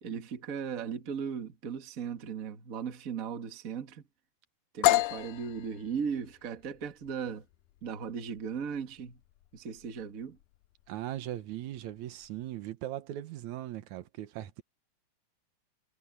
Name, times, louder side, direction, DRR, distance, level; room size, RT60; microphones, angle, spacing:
voice 1, 0.0-4.0 4.7-7.4 7.8-9.2 9.5-10.4, right 7 dB, 35° right, 1.7 m, -37 dB
sound 1, 4.8-12.5, left 18 dB, 90° left, 2.1 m, -33 dB
voice 2, 10.9-14.6, right 13 dB, 75° right, 2.4 m, -39 dB
omnidirectional pair, 3.4 m